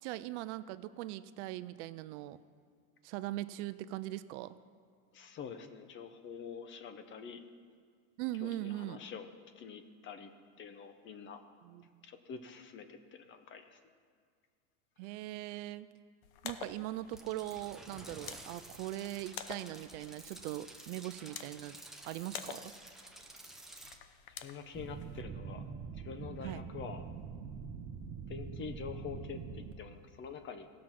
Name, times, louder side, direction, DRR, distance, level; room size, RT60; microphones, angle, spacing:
voice 1, 0.0-2.4 3.0-4.6 8.2-9.0 11.6-11.9 15.0-15.9 16.4-21.8 22.0-22.7 26.4-26.6, right 15 dB, 60° right, 14 dB, 0.5 m, -40 dB
voice 2, 5.1-7.4 8.4-9.3 9.6-10.3 10.6-11.4 12.0-13.8 15.1-15.2 24.3-25.6 25.9-27.1 28.3-30.7, left 6 dB, 30° left, 9 dB, 0.8 m, -46 dB
sound 1, 16.2-25.2, left 9 dB, 60° left, 0.9 m, -50 dB
sound 2, 17.1-24.0, right 1 dB, ahead, 0.8 m, -52 dB
sound 3, 24.7-29.7, right 6 dB, 35° right, 0.9 m, -44 dB
16.0 x 6.2 x 6.0 m, 2.1 s
supercardioid pair, 135°, 39 cm